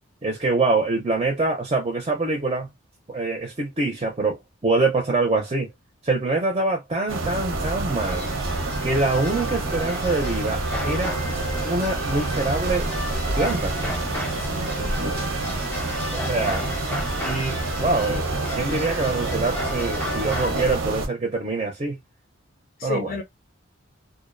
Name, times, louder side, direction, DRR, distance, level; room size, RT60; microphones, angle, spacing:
voice 1, 0.2-2.7 3.1-5.7 6.0-8.3 8.8-11.2 11.6-12.9 13.4-13.8 16.1-16.7 17.2-18.2 18.5-22.0 22.8-23.2, right 3 dB, 25° right, 0.5 m, -25 dB
sound 1, 7.1-21.1, right 2 dB, 85° right, 0.7 m, -28 dB
sound 2, 8.0-20.6, left 1 dB, 10° left, 0.7 m, -34 dB
voice 2, 14.3-14.9 22.8-23.2, left 4 dB, 45° left, 0.4 m, -32 dB
2.5 x 2.0 x 2.5 m
head